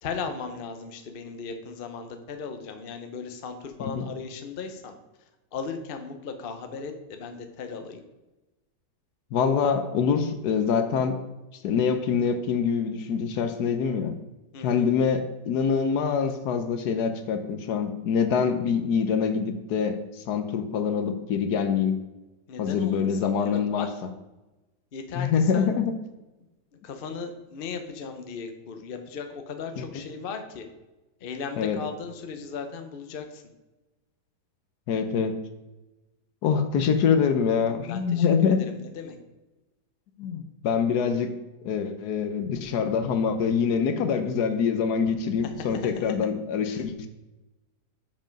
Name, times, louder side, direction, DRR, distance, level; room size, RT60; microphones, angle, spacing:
voice 1, 0.0-4.9 5.5-8.0 14.5-14.9 22.5-23.9 24.9-25.6 26.8-30.6 31.2-33.4 37.9-39.2 45.4-46.3 46.7-46.8, left 5 dB, 45° left, 6 dB, 0.7 m, -37 dB
voice 2, 9.3-11.2 11.6-14.2 14.6-22.0 22.6-23.9 25.2-26.0 29.8-29.9 31.6-31.8 34.9-35.4 36.4-38.6 40.2-41.4 41.6-47.1, left 6 dB, 70° left, 8 dB, 1.2 m, -25 dB
7.3 x 5.4 x 5.2 m, 1.1 s
omnidirectional pair, 1.9 m